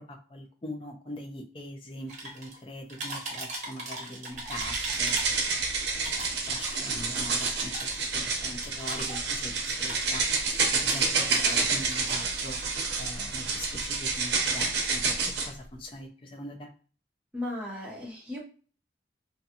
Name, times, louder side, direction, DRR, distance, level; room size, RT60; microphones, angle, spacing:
voice 1, 0.0-5.4 5.9-7.9 8.1-12.6 13.0-16.7, left 1 dB, 30° left, 4 dB, 0.4 m, -42 dB
sound 1, 2.1-2.6 2.9-5.6 5.9-9.5 9.8-11.6 11.8-12.6, right 2 dB, 40° right, 0.8 m, -39 dB
sound 2, 4.5-15.5, right 4 dB, 70° right, 0.6 m, -29 dB
voice 2, 17.3-18.4, left 1 dB, 5° right, -4 dB, 0.7 m, -36 dB
2.6 x 2.2 x 2.7 m, 0.40 s
head